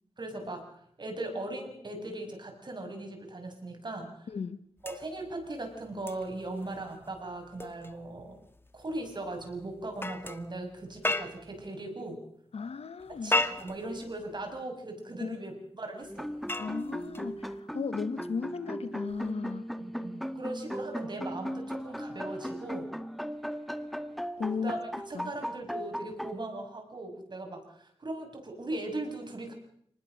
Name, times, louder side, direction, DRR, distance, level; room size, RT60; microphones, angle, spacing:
voice 1, 0.2-0.6 1.0-4.3 4.8-8.4 8.7-12.2 13.2-16.3 19.8-22.9 24.6-29.5, right 2 dB, 45° right, 6.6 m, -39 dB
voice 2, 4.3-4.7 12.5-13.4 15.2-15.4 16.6-19.7 24.4-24.8 25.1-25.3, left 5 dB, 75° left, 1.1 m, -35 dB
sound 1, 4.8-11.7 13.0-14.6 16.0-17.6 19.1-19.3, left 2 dB, 20° left, 1.5 m, -37 dB
sound 2, 16.1-26.4, equal, ahead, 1.5 m, -37 dB
26.5 x 20.0 x 6.5 m
wide cardioid pair, 80°, 10 cm